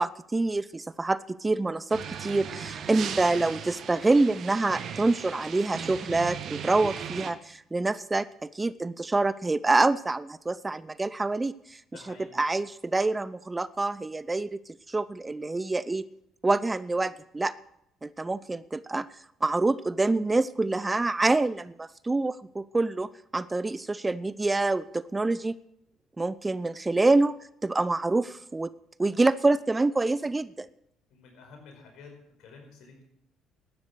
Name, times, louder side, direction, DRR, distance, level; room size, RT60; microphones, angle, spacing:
voice 1, 0.0-11.8 12.4-14.6 14.9-16.1 16.4-17.5 18.0-19.1 19.4-25.6 26.2-28.7 29.0-30.7, right 2 dB, 20° right, 18 dB, 0.5 m, -26 dB
sound 1, 1.9-7.3, right 8 dB, 55° right, 1.3 m, -37 dB
voice 2, 11.9-12.4 31.1-32.1 32.4-33.0, left 4 dB, 65° left, 2 dB, 5.1 m, -50 dB
12.0 x 10.5 x 8.2 m, 0.75 s
hypercardioid pair, 55°, 0 cm